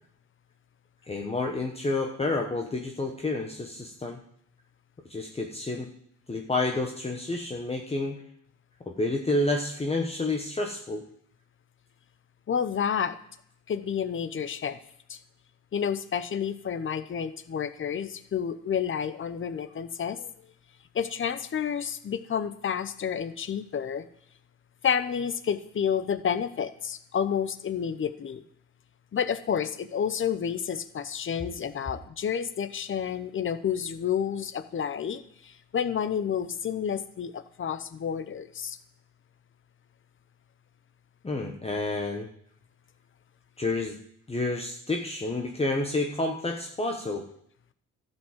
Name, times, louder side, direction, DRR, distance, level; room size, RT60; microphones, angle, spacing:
voice 1, 1.1-4.2 5.1-5.9 6.3-8.2 8.9-11.0 41.2-42.3 43.6-44.0 44.3-47.2, left 2 dB, 20° left, 1 dB, 1.1 m, -29 dB
voice 2, 12.5-13.2 13.7-14.8 15.1-15.2 15.7-20.3 20.9-24.1 24.8-28.4 29.1-38.8, left 8 dB, 40° left, 12 dB, 0.8 m, -30 dB
12.0 x 5.4 x 7.4 m, 0.69 s
cardioid pair, 90°, 30 cm